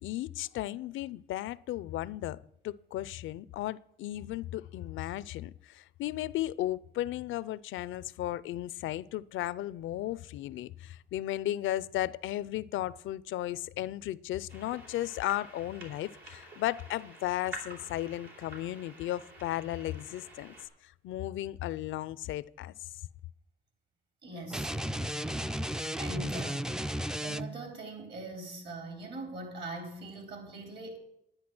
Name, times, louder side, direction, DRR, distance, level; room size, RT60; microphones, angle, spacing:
voice 1, 0.0-2.4 2.6-20.5 20.8-22.7, left 14 dB, 80° left, 0.5 m, -35 dB
sound 1, 14.5-20.7, right 1 dB, 75° right, 3.4 m, -49 dB
voice 2, 24.2-24.7 26.0-26.7 27.2-31.0, right 2 dB, 60° right, 3.7 m, -41 dB
sound 2, 24.5-27.7, equal, 5° right, 0.3 m, -34 dB
10.5 x 10.0 x 6.1 m
cardioid pair, 90°, 20 cm